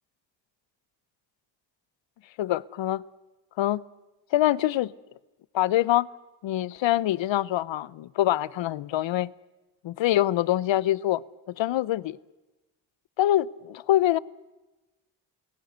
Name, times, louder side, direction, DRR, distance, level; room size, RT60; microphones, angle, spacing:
voice 1, 2.4-3.0 3.6-3.8 4.3-4.9 5.5-6.1 6.4-9.3 9.8-11.2 11.6-12.2 13.2-14.2, left 13 dB, 75° left, 22 dB, 0.7 m, -24 dB
29.0 x 18.0 x 8.0 m, 1.1 s
cardioid pair, 65°, 45 cm